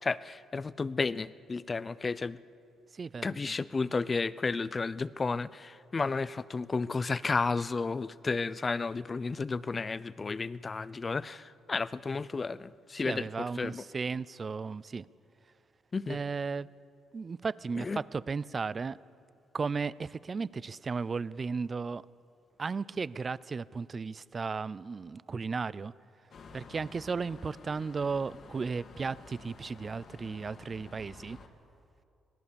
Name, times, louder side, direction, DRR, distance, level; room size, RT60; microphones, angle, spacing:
voice 1, 0.0-2.4 3.2-13.8 15.9-16.2 17.8-18.0, left 4 dB, 30° left, 18 dB, 0.6 m, -32 dB
voice 2, 2.9-3.3 13.0-15.1 16.1-16.7 17.1-19.0 19.5-22.1 22.6-25.9 26.5-31.4, right 4 dB, 35° right, 20 dB, 0.5 m, -35 dB
sound 1, 26.3-31.5, left 4 dB, 60° left, 2.4 m, -52 dB
26.0 x 18.5 x 7.0 m, 2.6 s
cardioid pair, 90°, 0 cm